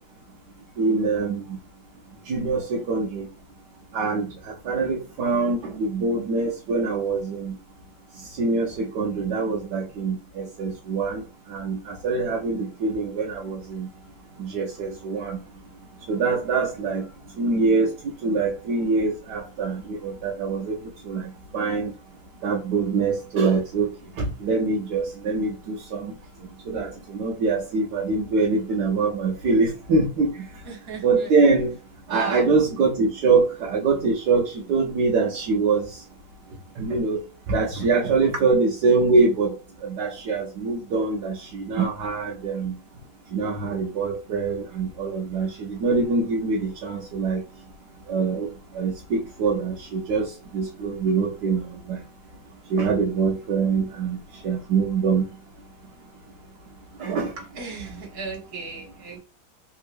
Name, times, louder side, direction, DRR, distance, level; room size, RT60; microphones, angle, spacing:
voice 1, 0.8-1.6 2.3-3.3 3.9-7.5 8.4-11.2 11.5-13.9 14.4-15.4 16.1-17.0 17.4-17.9 18.2-20.8 21.1-21.9 22.4-23.9 24.2-26.1 26.7-30.5 31.0-31.7 32.1-35.9 36.8-37.2 37.5-39.5 39.8-42.8 43.3-47.4 48.1-48.5 48.7-52.0 52.7-54.2 54.4-55.3 57.0-57.3, right 4 dB, 70° right, -2 dB, 1.1 m, -24 dB
voice 2, 30.7-31.3 32.1-32.5 57.6-59.2, right 3 dB, 45° right, -1 dB, 1.7 m, -35 dB
3.6 x 2.9 x 2.5 m, 0.33 s
omnidirectional pair, 2.3 m